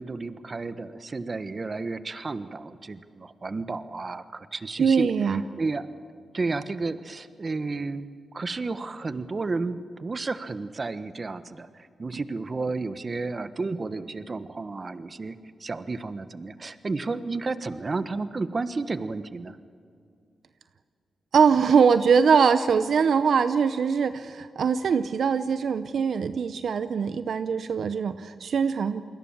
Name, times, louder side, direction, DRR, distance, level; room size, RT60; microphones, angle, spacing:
voice 1, 0.0-5.9 6.3-8.1 8.3-19.6, right 3 dB, 40° right, 12 dB, 1.3 m, -32 dB
voice 2, 4.8-5.4 21.3-29.0, right 6 dB, 75° right, 11 dB, 0.8 m, -22 dB
28.5 x 21.0 x 7.3 m, 2.3 s
cardioid pair, 65°, 0 cm